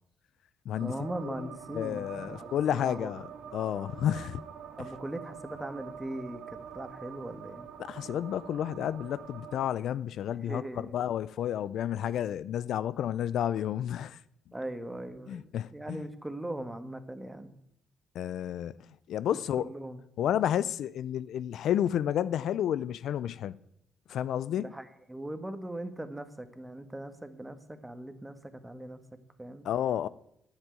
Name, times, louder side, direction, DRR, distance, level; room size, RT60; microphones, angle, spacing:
sound 1, 0.7-9.6, right 8 dB, 80° right, 1.4 m, -46 dB
voice 1, 0.8-3.1 4.8-7.7 10.4-11.1 14.5-17.5 19.3-20.0 24.5-29.0 29.4-29.7, right 1 dB, 10° right, 1.3 m, -40 dB
voice 2, 1.7-3.2 3.5-4.4 7.8-10.6 10.9-14.2 15.3-16.0 18.2-18.8 19.1-19.7 20.2-23.6 24.1-24.7 29.7-30.1, left 10 dB, 75° left, 0.4 m, -31 dB
9.9 x 7.4 x 9.1 m
cardioid pair, 90°, 0 cm